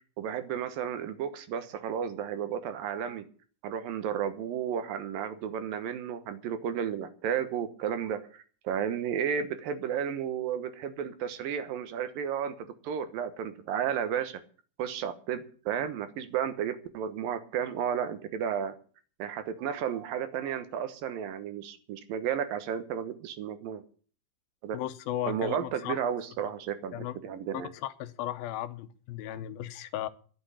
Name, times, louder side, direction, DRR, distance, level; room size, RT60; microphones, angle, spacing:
voice 1, 0.2-3.3 3.6-14.4 14.8-18.7 19.2-23.8 24.6-24.8 25.3-27.7, right 8 dB, 75° right, 2.8 m, -33 dB
voice 2, 24.7-26.0 26.9-27.2 27.8-30.1, left 13 dB, 85° left, 2.7 m, -35 dB
12.0 x 7.8 x 9.9 m
omnidirectional pair, 4.2 m